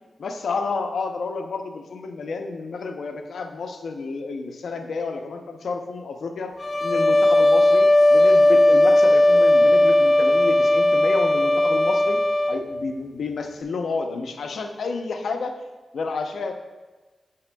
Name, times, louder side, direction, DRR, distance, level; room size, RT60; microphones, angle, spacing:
voice 1, 0.2-6.5 6.8-12.2 12.5-15.6 15.9-16.5, left 4 dB, 85° left, 5 dB, 0.6 m, -30 dB
sound 1, 6.6-12.6, left 1 dB, 40° left, 0.6 m, -17 dB
8.4 x 6.9 x 2.3 m, 1.3 s
cardioid pair, 70°, 0 cm